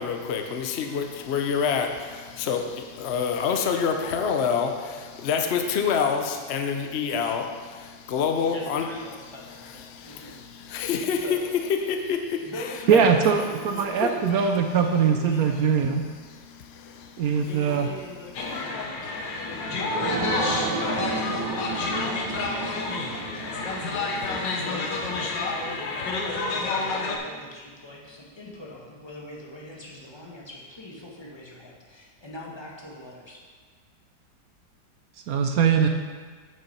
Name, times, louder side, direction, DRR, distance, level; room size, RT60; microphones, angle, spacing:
voice 1, 0.0-8.9 9.8-11.4 11.7-12.5 12.9-13.0 14.0-14.1 16.3-17.4, left 6 dB, 55° left, 4 dB, 0.7 m, -27 dB
voice 2, 8.5-10.4 11.2-11.6 12.4-15.8 17.3-21.1 21.7-33.4, left 1 dB, 15° left, -3 dB, 1.2 m, -42 dB
voice 3, 12.9-16.0 17.2-17.9 35.3-35.9, right 6 dB, 65° right, 5 dB, 1.0 m, -21 dB
sound 1, 18.3-27.2, left 3 dB, 85° left, 1.7 m, -29 dB
sound 2, 19.3-26.4 26.8-26.9 27.3-27.4, right 3 dB, 85° right, 1.7 m, -33 dB
8.9 x 6.7 x 4.2 m, 1.5 s
omnidirectional pair, 1.9 m